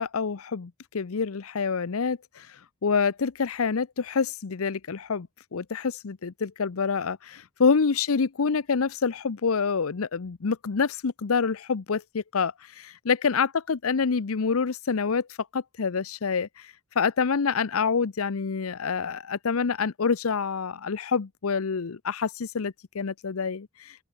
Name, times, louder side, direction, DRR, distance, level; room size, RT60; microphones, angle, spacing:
voice 1, 0.0-2.5 2.8-15.3 15.5-16.7 17.0-24.0, left 5 dB, 75° left, 0.6 m, -27 dB
open air
head